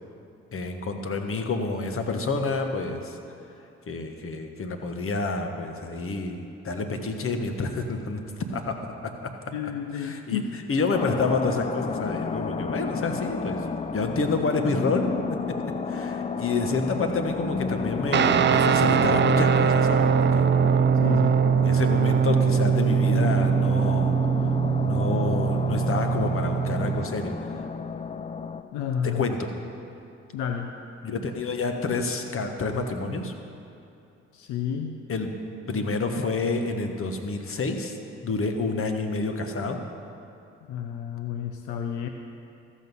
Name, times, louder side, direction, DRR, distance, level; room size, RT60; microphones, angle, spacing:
voice 1, 0.5-3.2 3.9-13.6 13.9-15.2 15.5-15.6 15.9-20.5 21.6-24.5 24.8-27.3 29.0-29.5 31.0-33.3 35.1-35.3 35.7-38.0 38.2-39.8, left 3 dB, 45° left, 5 dB, 1.2 m, -29 dB
voice 2, 9.5-10.6 21.0-21.4 28.7-29.3 30.3-30.7 34.3-35.0 40.7-42.1, left 8 dB, 80° left, 5 dB, 0.6 m, -31 dB
sound 1, 10.9-28.6, left 5 dB, 20° left, 0.5 m, -32 dB
Guitar, 18.1-27.0, right 7 dB, 40° right, 0.5 m, -22 dB
14.0 x 6.4 x 5.4 m, 2.7 s
supercardioid pair, 50°, 30 cm